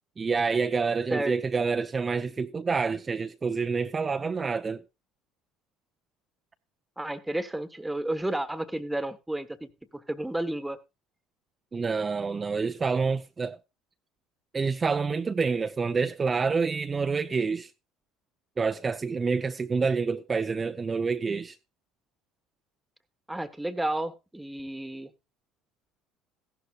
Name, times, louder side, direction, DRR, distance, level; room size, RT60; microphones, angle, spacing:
voice 1, 0.2-4.8 11.7-13.6 14.5-17.7 18.6-21.6, right 5 dB, 30° right, 0.6 m, -27 dB
voice 2, 7.0-10.8 23.3-25.1, right 1 dB, 5° right, 1.3 m, -32 dB
15.5 x 11.5 x 2.4 m
hypercardioid pair, 70°, 0 cm